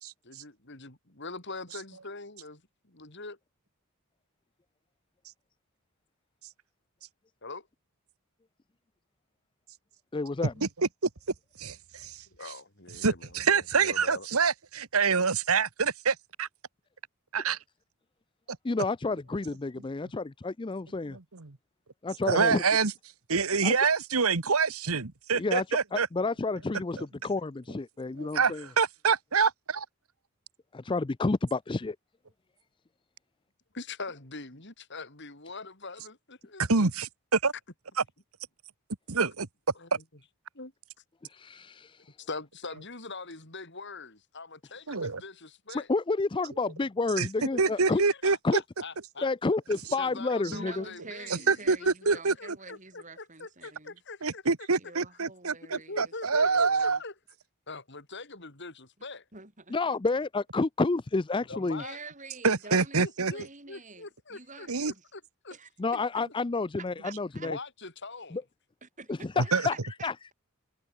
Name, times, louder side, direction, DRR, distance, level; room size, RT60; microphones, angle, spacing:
voice 1, 0.2-2.6 2.9-3.4 7.4-7.7 12.3-14.3 33.7-36.6 39.7-39.9 40.5-40.7 42.2-45.9 47.5-47.6 47.9-49.6 50.0-54.7 55.6-57.1 57.7-59.2 61.5-62.0 62.4-65.5 65.9-66.0 67.4-68.4, left 3 dB, 55° left, 4.2 m, -43 dB
voice 2, 10.1-10.5 18.6-21.2 22.0-22.6 23.6-23.7 25.3-28.7 30.7-32.0 41.2-42.2 45.9-48.0 48.4-48.6 49.2-50.8 59.7-61.8 65.8-67.6 68.3-68.4 69.1-69.8 70.0-70.1, left 3 dB, 20° left, 0.4 m, -30 dB
voice 3, 11.6-12.5 13.0-16.5 17.3-17.6 21.1-21.6 22.3-22.9 23.3-26.1 28.2-29.8 36.6-37.5 39.1-39.5 44.9-45.2 47.2-47.3 47.6-48.4 51.3-52.3 54.2-57.0 62.4-63.3 64.7-64.9 69.4-69.6, right 5 dB, 75° right, 1.4 m, -26 dB
voice 4, 50.5-54.0 54.8-57.0 59.3-60.0 61.8-65.0 65.5-65.7 67.0-67.5 68.8-69.3 69.7-70.3, right 3 dB, 35° right, 5.7 m, -47 dB
head